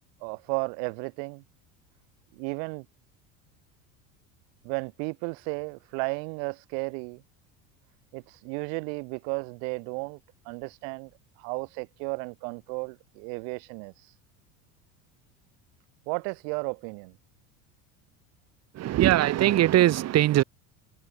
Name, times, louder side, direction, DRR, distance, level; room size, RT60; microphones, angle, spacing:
voice 1, 0.2-1.4 2.3-2.9 4.6-7.2 8.1-10.2 10.5-11.1 11.4-13.9 16.1-17.2, right 40 dB or more, 70° right, 4.1 m, -34 dB
voice 2, 18.7-20.4, right 14 dB, 40° right, 0.9 m, -21 dB
supercardioid pair, 95°, 40 cm